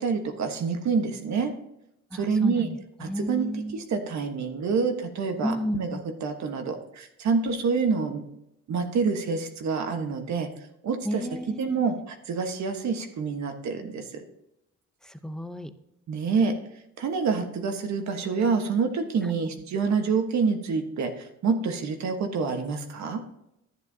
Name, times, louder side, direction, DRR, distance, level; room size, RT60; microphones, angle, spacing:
voice 1, 0.0-1.5 2.1-2.7 3.0-5.9 6.2-8.2 8.7-10.5 10.8-14.2 16.1-16.5 17.0-23.2, right 5 dB, 65° right, 5 dB, 1.3 m, -27 dB
voice 2, 2.1-3.8 5.4-6.1 11.0-11.9 15.0-15.7 19.4-19.6, equal, ahead, 11 dB, 0.6 m, -32 dB
11.0 x 9.8 x 2.8 m, 0.83 s
cardioid pair, 90°, 30 cm